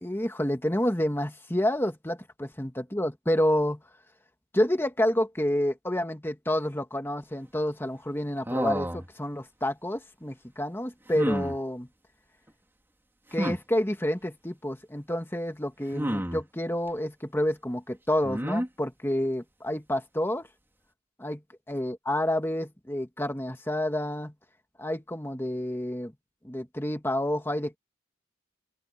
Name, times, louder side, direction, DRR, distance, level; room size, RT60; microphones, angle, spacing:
voice 1, 0.0-3.8 4.5-11.9 13.3-20.5 21.2-21.4 21.7-24.3 24.8-26.1 26.4-27.8, left 1 dB, 10° left, 1.9 m, -29 dB
sound 1, 8.5-9.1 11.1-11.6 13.3-13.6 15.9-16.4 18.2-18.7, equal, 10° right, 3.3 m, -29 dB
open air
head